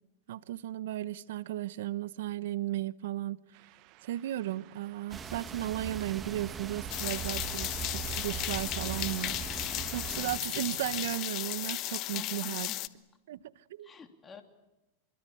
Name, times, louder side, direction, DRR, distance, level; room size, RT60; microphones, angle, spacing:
voice 1, 0.3-3.4 4.0-9.4 9.9-12.7 13.3-13.4 13.7-13.9, right 14 dB, 75° right, 1.1 m, -35 dB
sound 1, 3.5-11.2, right 16 dB, 50° right, 1.1 m, -53 dB
sound 2, 5.1-10.4, right 7 dB, 20° right, 1.8 m, -40 dB
sound 3, 6.9-12.9, left 17 dB, 45° left, 1.2 m, -35 dB
voice 2, 8.9-9.3 12.1-12.8 13.8-14.4, left 6 dB, 20° left, 3.2 m, -49 dB
27.0 x 24.0 x 8.8 m
hypercardioid pair, 120°, 0 cm